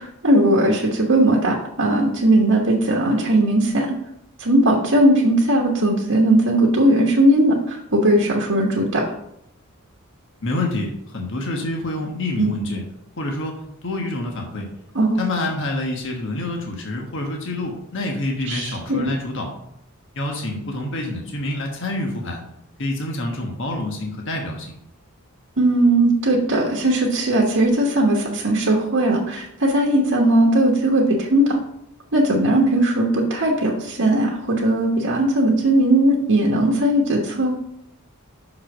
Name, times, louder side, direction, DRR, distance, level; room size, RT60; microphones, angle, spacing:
voice 1, 0.0-3.9 4.4-9.0 12.4-12.5 14.9-15.2 18.5-19.1 25.6-31.6 32.1-37.5, right 1 dB, 65° right, -2 dB, 1.3 m, -18 dB
voice 2, 10.4-12.8 13.2-14.7 15.2-19.5 20.1-22.4 22.8-24.7, left 2 dB, 60° left, 1 dB, 1.3 m, -27 dB
6.3 x 5.7 x 5.0 m, 0.75 s
head